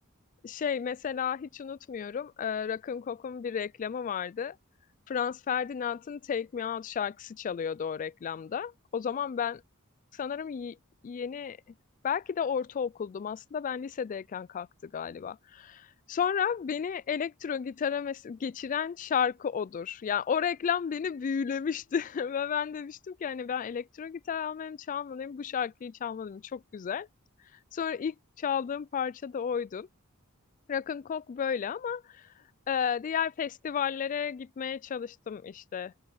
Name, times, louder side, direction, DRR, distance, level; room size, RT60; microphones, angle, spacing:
voice 1, 0.4-4.6 5.1-9.6 10.2-10.8 11.0-11.6 12.0-27.1 27.7-29.9 30.7-32.2 32.7-35.9, left 7 dB, 40° left, 0.3 m, -32 dB
open air
head